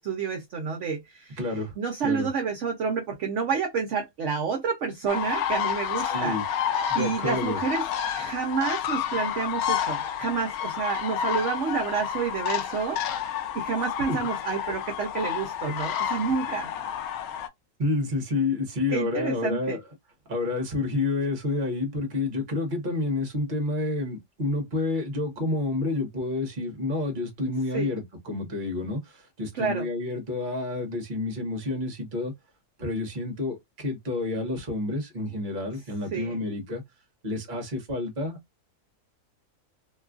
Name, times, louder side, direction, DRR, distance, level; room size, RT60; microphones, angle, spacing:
voice 1, 0.0-1.4 1.8-6.4 6.9-7.8 8.1-13.2 13.5-16.7 18.9-19.8 27.7-27.9 29.5-29.9 36.1-36.4, right 6 dB, 60° right, 0.8 m, -29 dB
voice 2, 1.4-1.7 2.0-2.3 6.1-6.4 6.9-7.6 14.1-14.2 17.8-19.8 20.3-32.3 32.8-36.8 37.2-38.4, left 2 dB, 35° right, 1.0 m, -29 dB
sound 1, 5.1-17.5, left 9 dB, 75° left, 1.0 m, -30 dB
3.0 x 2.3 x 2.3 m
omnidirectional pair, 1.7 m